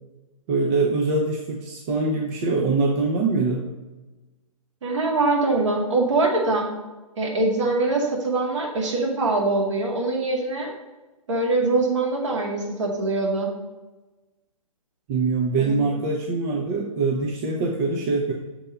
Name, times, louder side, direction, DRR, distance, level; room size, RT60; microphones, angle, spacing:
voice 1, 0.5-3.6 15.1-18.3, right 3 dB, 25° right, 1 dB, 0.8 m, -23 dB
voice 2, 4.8-6.7 7.2-10.7 11.3-13.5 15.6-15.9, right 2 dB, 55° right, -1 dB, 2.2 m, -23 dB
7.0 x 4.4 x 6.8 m, 1.1 s
figure-of-eight pair, 125°, 18 cm